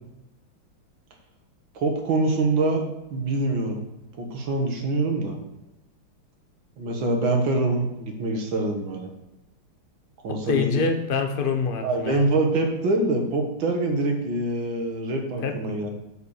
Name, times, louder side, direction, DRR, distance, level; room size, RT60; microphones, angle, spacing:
voice 1, 1.8-2.8 3.1-3.8 4.2-5.4 6.8-9.1 10.2-10.8 11.8-15.9, right 2 dB, 65° right, 2 dB, 2.1 m, -25 dB
voice 2, 10.5-12.3 15.4-15.8, left 5 dB, 50° left, 5 dB, 0.6 m, -25 dB
7.7 x 5.3 x 6.4 m, 0.96 s
omnidirectional pair, 2.3 m